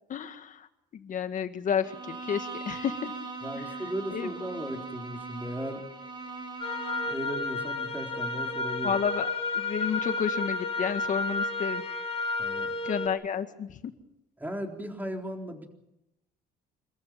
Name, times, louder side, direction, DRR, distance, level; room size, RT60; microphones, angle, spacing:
voice 1, 0.1-0.7 0.9-3.1 3.6-3.7 4.1-4.3 8.8-9.3 9.5-11.8 12.8-13.9, left 8 dB, 50° left, 9 dB, 1.9 m, -31 dB
Bowed string instrument, 1.8-7.3, right 4 dB, 25° right, 3.7 m, -40 dB
voice 2, 3.4-5.9 7.0-9.0 12.4-12.8 14.4-15.7, equal, 10° right, 3 dB, 3.9 m, -36 dB
sound 1, 6.6-13.1, left 2 dB, 35° left, 2.6 m, -31 dB
27.0 x 14.5 x 8.9 m, 0.88 s
cardioid pair, 110°, 17 cm